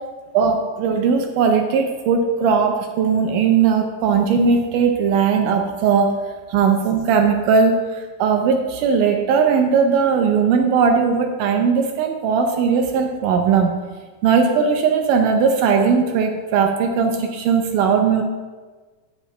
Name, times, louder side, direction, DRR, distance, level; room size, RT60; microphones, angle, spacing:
voice 1, 0.3-6.1 6.5-7.7 8.2-13.7 14.2-18.2, right 6 dB, 80° right, 4 dB, 2.1 m, -18 dB
8.2 x 7.5 x 3.3 m, 1.4 s
omnidirectional pair, 4.0 m